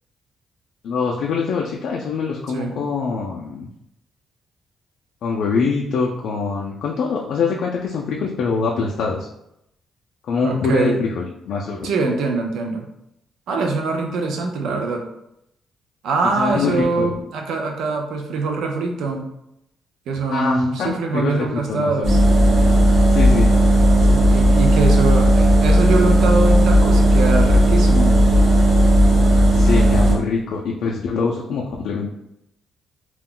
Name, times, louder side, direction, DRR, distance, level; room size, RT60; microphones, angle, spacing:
voice 1, 0.8-3.7 5.2-9.3 10.2-11.9 16.4-17.1 20.3-22.2 23.1-23.5 29.5-32.1, left 4 dB, 70° left, -2 dB, 0.3 m, -24 dB
voice 2, 2.5-2.9 10.4-11.0 11.8-12.9 13.5-15.0 16.0-19.3 20.1-22.2 24.0-28.2, right 3 dB, 80° right, 2 dB, 0.5 m, -23 dB
sound 1, 22.0-30.1, right 1 dB, 60° right, 1.1 m, -14 dB
2.3 x 2.1 x 3.6 m, 0.81 s
cardioid pair, 135°, 0 cm